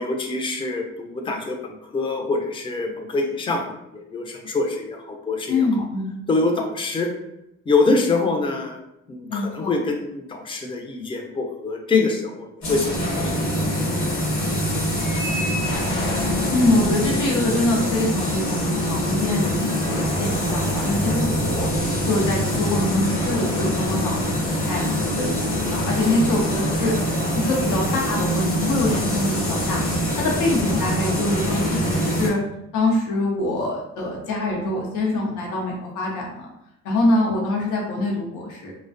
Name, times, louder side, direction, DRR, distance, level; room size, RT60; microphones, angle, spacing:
voice 1, 0.0-5.7 6.3-7.1 7.7-12.9 13.2-13.4, left 3 dB, 15° left, 2 dB, 0.4 m, -25 dB
voice 2, 5.5-6.2 9.3-9.8 16.5-21.7 22.1-25.4 25.7-26.9 27.4-29.8 30.2-32.4 32.7-36.5 36.8-38.7, left 2 dB, 85° left, -1 dB, 0.6 m, -24 dB
sound 1, 12.6-32.3, equal, 65° left, 1.1 m, -24 dB
2.4 x 2.1 x 2.4 m, 0.83 s
cardioid pair, 90°, 30 cm